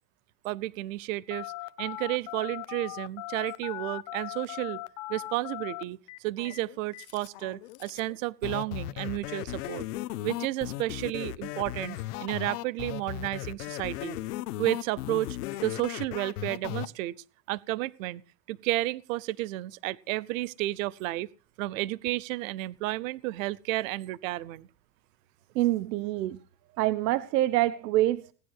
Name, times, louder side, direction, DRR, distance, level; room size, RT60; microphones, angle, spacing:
voice 1, 0.4-1.5 1.8-4.8 5.1-6.0 6.2-9.9 10.2-14.2 14.6-17.1 17.5-18.2 18.5-21.3 21.6-24.7, right 17 dB, 55° right, 0.7 m, -32 dB
Telephone, 1.3-8.2, left 19 dB, 40° left, 0.8 m, -40 dB
sound 1, 8.4-16.9, left 15 dB, 65° left, 1.2 m, -36 dB
voice 2, 25.5-26.4 26.8-28.3, right 15 dB, 80° right, 0.9 m, -26 dB
18.5 x 10.0 x 6.4 m
supercardioid pair, 175°, 48 cm